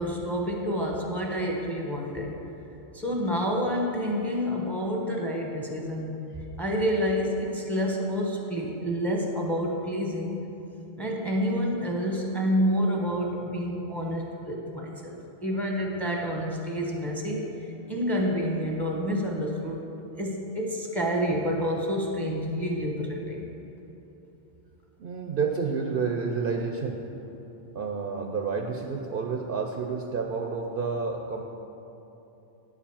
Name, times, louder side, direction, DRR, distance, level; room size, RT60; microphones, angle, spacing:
voice 1, 0.0-2.3 2.9-6.2 6.6-10.4 11.0-19.8 20.2-23.5, equal, ahead, -1 dB, 0.9 m, -28 dB
voice 2, 25.0-27.0 27.7-31.4, right 5 dB, 60° right, 2 dB, 0.7 m, -29 dB
9.5 x 4.9 x 7.1 m, 2.9 s
omnidirectional pair, 1.2 m